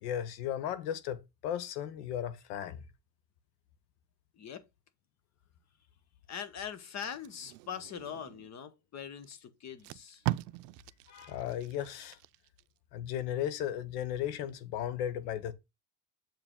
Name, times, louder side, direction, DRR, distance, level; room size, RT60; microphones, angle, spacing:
voice 1, 0.0-2.8 11.1-12.2 12.9-15.5, left 10 dB, 80° left, 1.2 m, -35 dB
voice 2, 4.3-4.7 6.3-10.2, left 8 dB, 35° left, 1.0 m, -42 dB
Packing tape duct tape, 6.8-8.5 9.2-9.3 9.7-12.6 13.1-13.3, right 19 dB, 85° right, 0.6 m, -40 dB
7.4 x 4.9 x 3.7 m
supercardioid pair, 115°, 47 cm